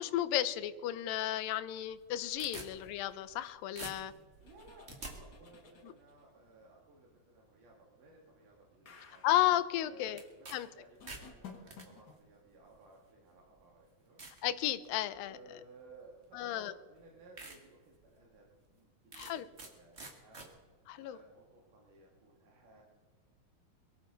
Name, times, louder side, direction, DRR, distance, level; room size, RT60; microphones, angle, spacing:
voice 1, 0.0-4.1 9.2-10.2 10.5-10.7 14.4-15.4 16.3-16.7 19.1-19.5 20.9-21.2, left 13 dB, 80° left, 14 dB, 2.3 m, -33 dB
sound 1, 1.9-3.5 3.8-5.1 10.2-10.6 10.9-11.9 12.7-12.8 13.5-13.6 14.2-14.4 14.9-15.3 16.4-16.5 16.9-17.0 17.4-17.6 18.0-18.1 19.1-19.7 20.0-20.5, right 2 dB, 30° right, 1.4 m, -47 dB
sound 2, 4.4-6.3 8.8-9.5 11.0-12.2, left 6 dB, 45° left, 1.3 m, -54 dB
voice 2, 4.4-9.2 9.8-14.2 15.3-22.8, right 2 dB, 60° right, -3 dB, 3.6 m, -59 dB
23.0 x 14.5 x 4.0 m, 1.4 s
omnidirectional pair, 4.2 m